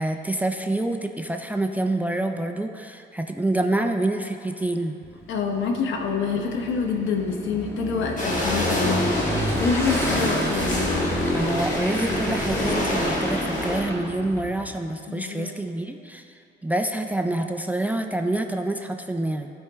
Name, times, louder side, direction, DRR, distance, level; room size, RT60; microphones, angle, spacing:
voice 1, 0.0-5.0 11.3-16.3 16.6-19.5, right 1 dB, 10° right, 5 dB, 0.4 m, -27 dB
Motorcycle / Engine, 5.0-14.7, equal, 15° left, 1.4 m, -29 dB
voice 2, 5.3-9.1 9.6-10.9 15.1-15.5, left 5 dB, 75° left, 2 dB, 0.9 m, -26 dB
sound 1, 8.2-13.8, left 1 dB, 40° left, 1.5 m, -28 dB
12.0 x 4.5 x 3.5 m, 2.6 s
cardioid pair, 90°, 20 cm